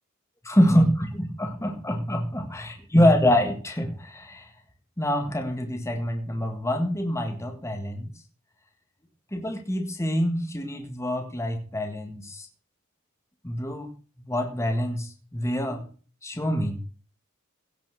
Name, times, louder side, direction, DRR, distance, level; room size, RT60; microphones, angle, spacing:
voice 1, 0.4-4.5 5.0-8.1 9.3-12.5 13.4-13.9 14.3-15.8 16.2-16.8, equal, 15° left, 3 dB, 1.8 m, -25 dB
17.0 x 6.0 x 6.4 m, 0.37 s
head